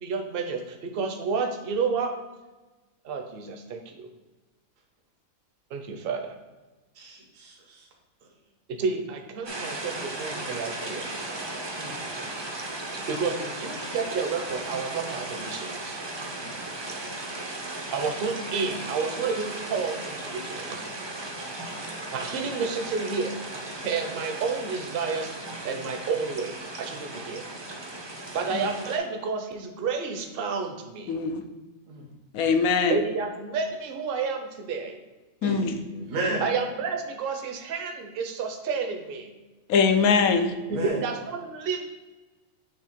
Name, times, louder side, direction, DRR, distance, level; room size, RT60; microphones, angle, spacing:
voice 1, 0.0-2.1 3.0-4.1 5.7-6.3 8.7-11.1 12.9-16.0 17.9-20.9 21.9-23.4 23.8-25.3 25.6-27.4 28.3-31.1 32.9-35.0 36.3-39.3 40.7-41.9, right 5 dB, 50° right, 4 dB, 0.8 m, -30 dB
voice 2, 6.9-7.9 11.8-12.0 16.4-16.6 17.1-17.2 31.9-32.1 35.4-36.5 40.4-41.0, right 1 dB, 70° right, 0 dB, 1.3 m, -34 dB
sound 1, 9.5-29.0, right 2 dB, 30° right, 0.5 m, -36 dB
voice 3, 31.1-31.4 32.3-33.0 35.4-35.8 39.7-40.5, left 5 dB, 90° left, 7 dB, 1.1 m, -22 dB
6.3 x 3.3 x 5.0 m, 1.2 s
omnidirectional pair, 1.4 m